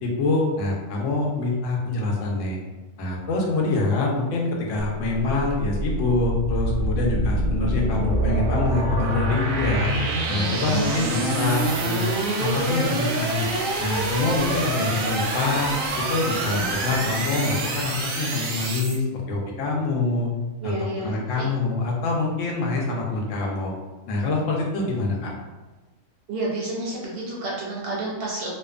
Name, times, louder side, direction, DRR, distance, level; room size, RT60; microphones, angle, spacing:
voice 1, 0.0-2.6 3.0-9.9 10.3-12.1 12.4-13.5 13.8-15.7 16.1-20.3 20.6-20.7 21.0-23.7 24.1-25.3, left 3 dB, 75° left, -1 dB, 0.9 m, -25 dB
sound 1, 4.8-19.0, right 2 dB, 90° right, 1.0 m, -26 dB
voice 2, 15.4-15.8 16.4-17.2 20.6-21.5 26.3-28.5, right 2 dB, 60° right, -4 dB, 0.7 m, -31 dB
2.6 x 2.2 x 2.4 m, 1.2 s
omnidirectional pair, 1.4 m